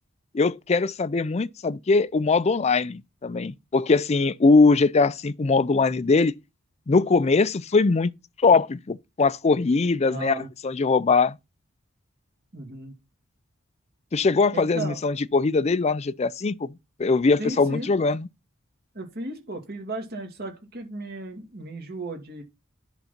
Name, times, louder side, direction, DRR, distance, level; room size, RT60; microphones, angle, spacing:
voice 1, 0.3-6.3 6.9-8.1 8.4-11.4 14.1-16.7 17.0-18.3, left 4 dB, 30° left, 0.4 m, -21 dB
voice 2, 10.1-10.5 12.5-12.9 14.5-15.0 17.4-17.9 18.9-22.4, right 2 dB, 50° right, 2.5 m, -35 dB
10.5 x 4.0 x 5.9 m
head